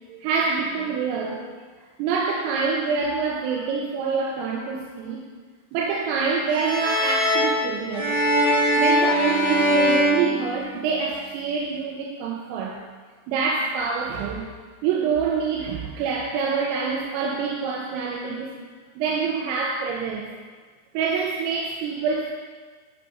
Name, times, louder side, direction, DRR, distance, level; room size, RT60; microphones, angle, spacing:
voice 1, 0.1-1.6 2.0-5.2 5.7-8.2 8.8-12.8 13.3-14.5 14.8-18.6 19.0-20.3 21.0-22.3, right 5 dB, 90° right, -2 dB, 3.4 m, -26 dB
sound 1, 6.5-11.1, equal, 70° left, 1.0 m, -22 dB
9.8 x 5.8 x 5.7 m, 1.5 s
omnidirectional pair, 5.9 m